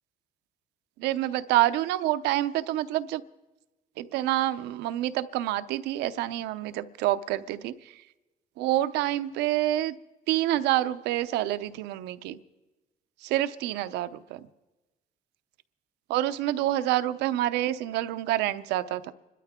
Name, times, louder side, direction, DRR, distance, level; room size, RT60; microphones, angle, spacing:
voice 1, 1.0-3.2 4.0-8.0 8.6-10.0 10.3-12.4 13.2-14.5 16.1-19.1, right 14 dB, 90° right, 12 dB, 0.7 m, -27 dB
26.5 x 12.5 x 3.7 m, 1.1 s
cardioid pair, 110°, 17 cm